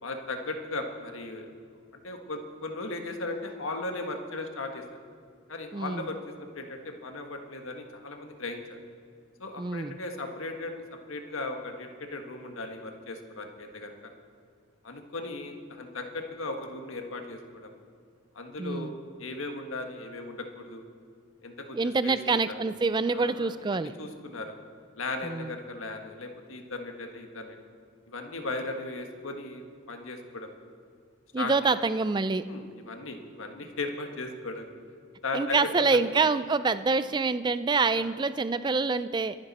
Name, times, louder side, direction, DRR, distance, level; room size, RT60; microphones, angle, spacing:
voice 1, 0.0-1.5 2.0-4.8 5.5-8.8 9.4-10.7 11.1-14.1 14.8-17.7 18.3-18.9 19.2-20.8 21.4-21.8 22.0-22.6 23.1-24.5 25.0-27.6 28.1-30.5 31.4-31.5 32.4-34.7 35.2-36.0 38.0-38.1, left 2 dB, 80° left, 4 dB, 1.5 m, -37 dB
voice 2, 5.7-6.1 9.6-10.0 18.6-18.9 21.7-23.9 25.2-25.6 31.3-32.5 35.3-39.4, right 4 dB, 20° right, 14 dB, 0.3 m, -26 dB
23.0 x 10.5 x 4.2 m, 2.1 s
head